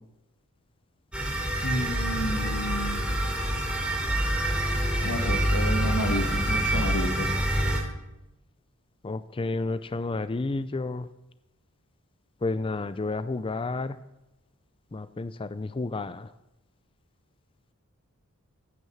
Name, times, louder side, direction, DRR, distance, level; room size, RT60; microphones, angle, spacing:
sound 1, 1.1-7.8, right 1 dB, 5° right, 2.9 m, -26 dB
voice 1, 1.6-3.2 5.0-7.3, equal, 90° left, 4 dB, 2.5 m, -31 dB
voice 2, 9.0-11.1 12.4-14.0 14.9-16.3, left 3 dB, 25° left, 14 dB, 0.4 m, -31 dB
15.5 x 9.5 x 7.2 m, 0.93 s
head